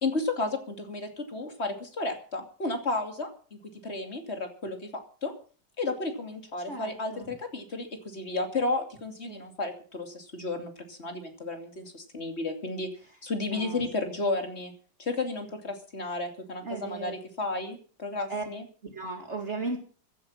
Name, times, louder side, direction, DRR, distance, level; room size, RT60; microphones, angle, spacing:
voice 1, 0.0-4.9 5.2-5.3 5.8-12.9 13.2-14.7 15.0-18.6, left 3 dB, 35° left, 5 dB, 3.0 m, -33 dB
voice 2, 6.7-7.3 9.3-9.4 13.0-13.1 13.5-14.1 16.6-17.1 18.3-18.5 18.8-19.8, right 3 dB, 40° right, 4 dB, 2.7 m, -36 dB
15.5 x 10.0 x 7.4 m, 0.41 s
omnidirectional pair, 1.9 m